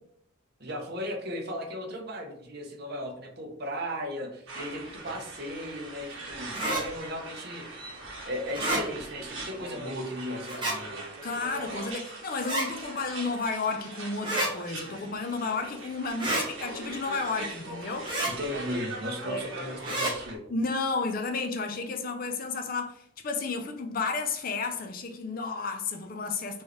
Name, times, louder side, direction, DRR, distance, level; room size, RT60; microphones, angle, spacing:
voice 1, 0.6-7.9 8.2-11.0 18.2-20.5, equal, 50° right, 0.9 m, -36 dB
sound 1, 4.5-20.3, right 2 dB, 75° right, 1.2 m, -41 dB
sound 2, 6.5-6.8 8.5-8.8 10.4-10.8 12.4-12.7 14.2-14.5 16.2-16.5 18.0-18.3 19.8-20.1, right 1 dB, 25° right, 1.2 m, -29 dB
voice 2, 11.2-18.1 19.2-19.5 20.5-26.6, left 4 dB, 45° left, 0.5 m, -32 dB
4.4 x 3.1 x 3.2 m
head